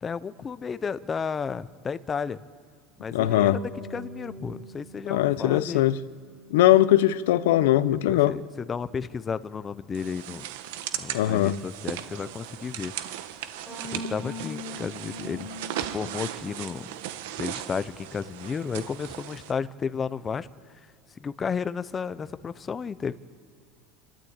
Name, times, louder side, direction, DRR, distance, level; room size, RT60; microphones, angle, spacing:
voice 1, 0.0-2.4 3.0-3.6 3.9-5.9 7.9-10.5 10.9-12.9 13.9-16.9 17.3-20.5 21.2-23.2, left 6 dB, 15° left, 0.5 m, -33 dB
voice 2, 3.1-3.6 5.1-6.0 6.5-8.3 11.1-11.6, left 14 dB, 90° left, 0.8 m, -20 dB
sound 1, 3.2-7.7 13.7-16.6, left 1 dB, 5° right, 6.4 m, -42 dB
sound 2, 9.9-19.5, right 12 dB, 70° right, 1.3 m, -37 dB
26.0 x 13.0 x 8.8 m
supercardioid pair, 175°, 0 cm